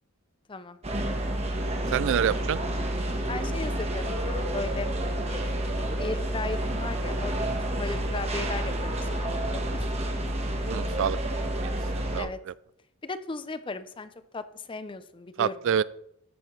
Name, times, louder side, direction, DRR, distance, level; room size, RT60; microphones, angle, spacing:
sound 1, 0.8-12.2, right 1 dB, 30° right, 1.3 m, -29 dB
voice 1, 1.9-2.6 10.7-11.2 11.6-12.5 15.4-15.8, right 8 dB, 60° right, 19 dB, 0.3 m, -27 dB
voice 2, 3.3-4.9 5.3-5.5 6.0-7.4 7.8-9.9 12.2-12.4 13.0-15.8, left 3 dB, 25° left, 12 dB, 0.5 m, -37 dB
13.5 x 8.1 x 3.2 m, 0.75 s
head